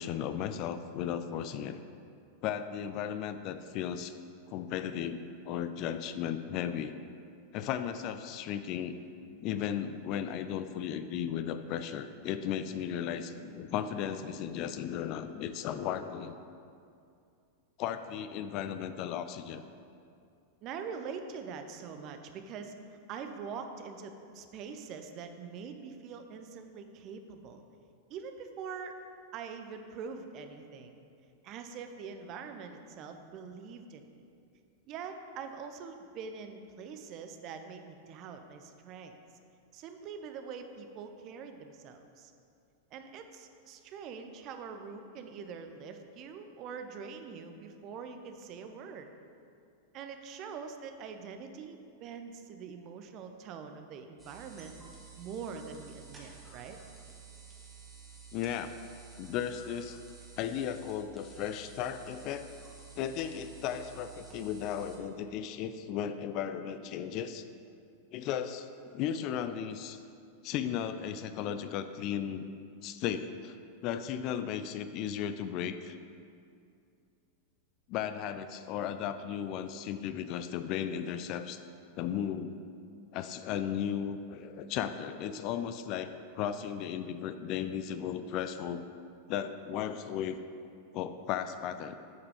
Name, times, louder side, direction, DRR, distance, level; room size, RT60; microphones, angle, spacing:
voice 1, 0.0-1.8 2.4-4.1 4.5-6.9 7.5-9.0 9.4-16.4 17.8-19.6 58.3-58.7 59.2-60.0 60.4-62.5 63.0-67.4 68.1-70.0 70.4-72.4 72.8-73.6 73.8-76.0 77.9-81.6 82.0-82.5 83.1-88.8 89.3-90.4 90.9-92.0, left 9 dB, 40° left, 10 dB, 0.3 m, -35 dB
voice 2, 20.6-27.6 28.1-28.9 29.3-31.0 31.4-34.1 34.9-39.1 39.7-42.3 42.9-49.1 49.9-54.7 55.2-56.8, right 6 dB, 40° right, 7 dB, 0.6 m, -44 dB
sound 1, 54.2-65.0, right 5 dB, 15° right, 1.6 m, -52 dB
8.1 x 4.8 x 4.8 m, 2.5 s
figure-of-eight pair, 90°, 0 cm